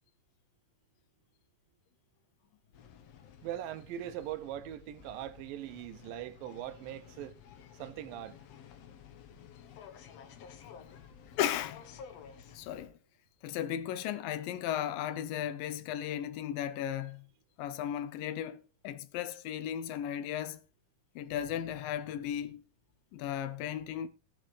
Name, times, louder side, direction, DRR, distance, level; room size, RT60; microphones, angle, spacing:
sound 1, 2.7-12.9, left 7 dB, 60° left, 1.8 m, -53 dB
voice 1, 3.4-7.3 7.8-8.4, right 12 dB, 85° right, 2.5 m, -41 dB
voice 2, 11.4-11.8 12.5-13.0 13.4-17.3 17.6-20.6 21.2-22.6 23.1-24.1, left 10 dB, 85° left, 2.5 m, -35 dB
18.0 x 7.9 x 3.3 m
omnidirectional pair, 4.0 m